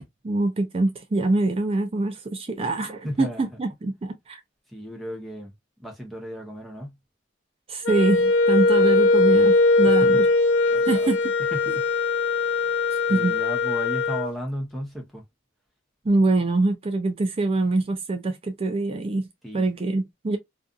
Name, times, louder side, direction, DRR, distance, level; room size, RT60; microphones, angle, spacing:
voice 1, 0.2-4.4 7.7-10.3 10.8-11.2 13.1-13.4 16.0-19.3 19.5-20.4, right 2 dB, 30° right, 0.4 m, -24 dB
voice 2, 3.0-3.4 4.7-5.5 5.8-6.9 9.9-10.2 10.7-11.1 11.5-11.8 12.4-12.8 13.1-15.2 19.4-19.7, equal, ahead, 0.7 m, -35 dB
Wind instrument woodwind instrument, 7.8-14.3, left 3 dB, 85° left, 0.5 m, -20 dB
2.6 x 2.3 x 2.3 m
head